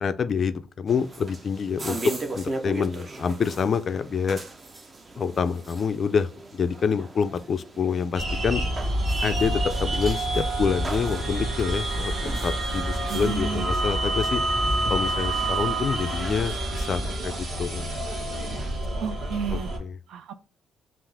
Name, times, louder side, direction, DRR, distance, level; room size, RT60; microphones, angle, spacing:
voice 1, 0.0-4.4 5.2-8.6 9.2-14.4 14.9-17.9 19.5-20.0, left 6 dB, 40° left, 0.3 m, -27 dB
sound 1, 0.9-16.6, right 2 dB, 25° right, 0.6 m, -39 dB
sound 2, 8.1-19.8, right 1 dB, 50° right, 1.5 m, -27 dB
voice 2, 13.1-13.7 19.0-19.7 20.1-20.3, right 6 dB, 75° right, 0.4 m, -31 dB
5.7 x 2.5 x 3.3 m
cardioid pair, 140°, 0 cm